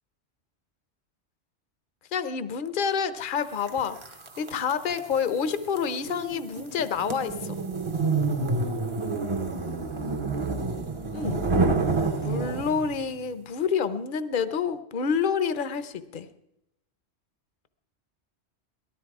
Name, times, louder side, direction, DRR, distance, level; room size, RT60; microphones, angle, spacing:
voice 1, 2.1-7.6 11.1-11.5 12.2-16.3, left 6 dB, 50° left, 12 dB, 0.9 m, -28 dB
sound 1, 3.7-13.0, right 3 dB, 30° right, 0.8 m, -29 dB
18.5 x 13.0 x 4.8 m, 0.88 s
omnidirectional pair, 1.1 m